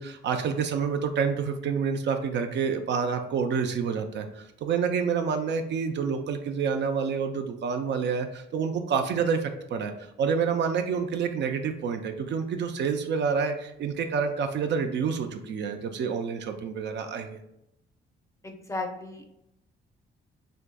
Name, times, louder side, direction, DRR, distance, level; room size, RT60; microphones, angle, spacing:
voice 1, 0.0-9.9 10.2-17.4, right 6 dB, 65° right, 6 dB, 0.5 m, -28 dB
voice 2, 18.4-19.5, left 2 dB, 15° left, 3 dB, 0.5 m, -36 dB
4.5 x 2.6 x 2.2 m, 0.82 s
cardioid pair, 90°, 20 cm